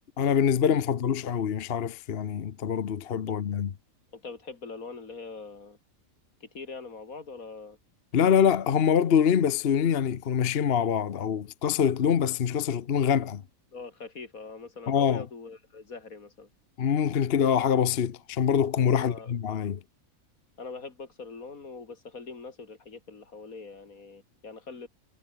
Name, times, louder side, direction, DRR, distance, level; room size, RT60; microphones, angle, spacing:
voice 1, 0.2-3.7 8.1-13.4 14.9-15.2 16.8-19.8, left 8 dB, 50° left, 1.0 m, -25 dB
voice 2, 4.1-5.8 6.4-7.8 13.7-16.5 19.0-19.3 20.6-24.9, left 4 dB, 80° left, 3.1 m, -43 dB
omnidirectional pair, 1.5 m